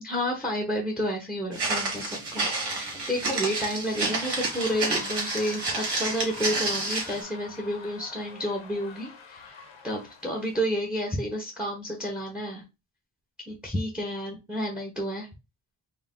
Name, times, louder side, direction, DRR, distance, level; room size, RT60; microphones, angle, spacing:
voice 1, 0.0-9.5 9.8-12.6 13.5-15.3, equal, ahead, 0 dB, 1.1 m, -30 dB
Walk footsteps, 1.5-7.2, right 3 dB, 60° right, 1.9 m, -30 dB
sound 1, 2.2-10.5, left 5 dB, 80° left, 1.1 m, -46 dB
4.5 x 2.2 x 3.7 m, 0.25 s
wide cardioid pair, 125°, 46 cm